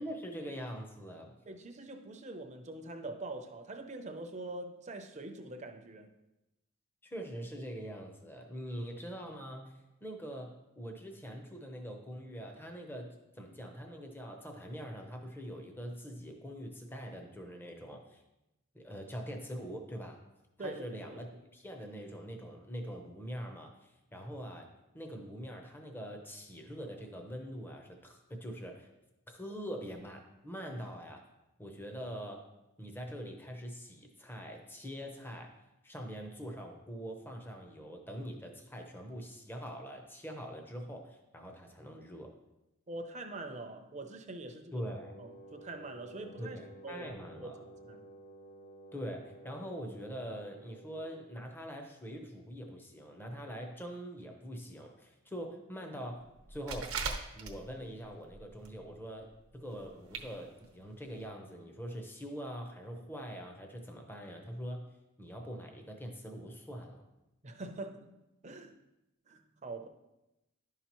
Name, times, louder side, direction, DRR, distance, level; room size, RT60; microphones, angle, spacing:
voice 1, 0.0-1.3 7.0-18.2 18.7-20.2 20.6-21.3 21.5-24.7 24.9-28.9 29.3-31.2 31.6-32.5 32.8-35.5 35.8-42.4 44.7-45.1 46.4-47.6 48.9-56.2 56.5-56.9 57.3-59.3 59.5-64.9 65.2-67.1, equal, 10° left, 3 dB, 0.7 m, -43 dB
voice 2, 1.5-6.1 20.6-21.2 42.9-44.8 45.2-46.6 46.8-47.1 47.4-48.1 67.4-68.1 68.4-68.8 69.3-69.9, right 2 dB, 35° right, 5 dB, 0.6 m, -44 dB
Wind instrument woodwind instrument, 44.8-51.4, right 1 dB, 50° left, 1.7 m, -53 dB
sound 1, 56.5-57.9 58.3-58.8 59.0-59.1 59.8-59.9 60.1-60.3 60.6-60.7 61.2-61.3, right 4 dB, 85° right, 0.9 m, -38 dB
10.5 x 5.6 x 3.0 m, 0.95 s
head